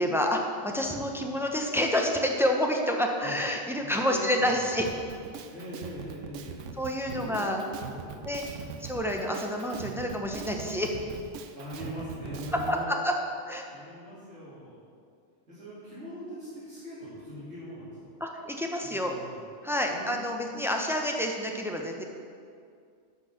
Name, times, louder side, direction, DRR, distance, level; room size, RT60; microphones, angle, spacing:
voice 1, 0.0-4.8 6.8-7.6 8.2-8.4 8.8-10.9 12.7-13.1 13.5-13.7 18.2-19.2 19.6-22.0, left 1 dB, ahead, 2 dB, 0.8 m, -28 dB
voice 2, 3.8-4.5 5.5-6.7 7.0-8.8 11.5-12.9 13.7-14.8 15.5-18.0 18.8-19.4 19.9-20.5, equal, 70° right, -12 dB, 3.2 m, -41 dB
Drum kit, 4.8-12.8, right 7 dB, 85° right, 1.0 m, -41 dB
11.5 x 6.2 x 6.6 m, 2.3 s
omnidirectional pair, 1.2 m